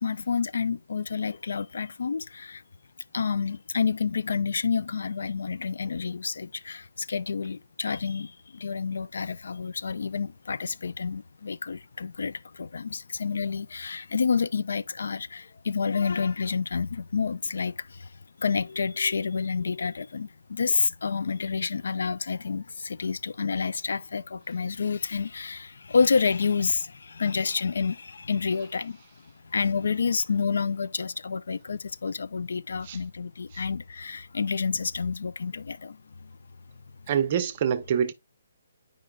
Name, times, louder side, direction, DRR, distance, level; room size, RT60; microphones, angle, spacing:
voice 1, 0.0-2.6 3.1-18.1 18.4-29.0 29.4-36.3, left 5 dB, 70° left, 0.4 m, -29 dB
voice 2, 37.1-38.1, right 8 dB, 25° right, 0.5 m, -26 dB
8.9 x 5.1 x 2.3 m
hypercardioid pair, 175°, 0 cm